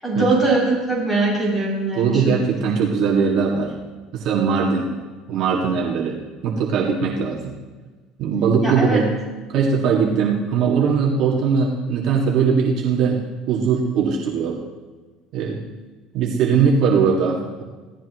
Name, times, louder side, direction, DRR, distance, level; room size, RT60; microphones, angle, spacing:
voice 1, 0.0-2.4 8.6-9.0, right 3 dB, 10° left, -5 dB, 7.4 m, -21 dB
voice 2, 2.0-3.7 4.1-4.9 5.3-6.2 6.4-7.5 8.2-9.1 9.5-13.2 13.5-14.6 15.3-15.6 16.1-17.6, right 5 dB, 50° right, -2 dB, 2.2 m, -20 dB
27.0 x 17.0 x 3.1 m, 1.3 s
cardioid pair, 165°, 0 cm